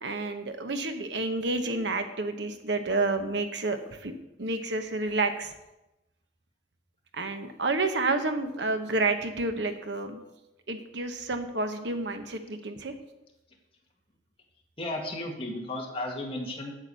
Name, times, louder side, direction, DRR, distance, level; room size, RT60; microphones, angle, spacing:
voice 1, 0.0-4.1 4.4-5.5 7.1-10.2 10.7-12.9, right 3 dB, 70° right, 7 dB, 1.1 m, -30 dB
voice 2, 14.8-16.7, left 1 dB, 30° left, 0 dB, 2.1 m, -34 dB
8.6 x 8.1 x 6.8 m, 0.96 s
head